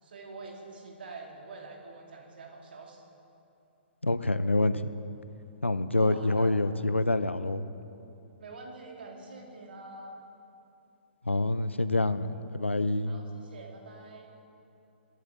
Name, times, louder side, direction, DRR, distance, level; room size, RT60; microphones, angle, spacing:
voice 1, 0.0-3.0 6.0-6.6 8.4-10.2 13.1-14.4, right 3 dB, 55° right, 1 dB, 2.4 m, -46 dB
voice 2, 4.0-4.8 5.6-7.6 11.3-13.2, left 2 dB, 85° left, 13 dB, 0.6 m, -26 dB
22.0 x 12.0 x 3.7 m, 2.8 s
figure-of-eight pair, 125°, 6 cm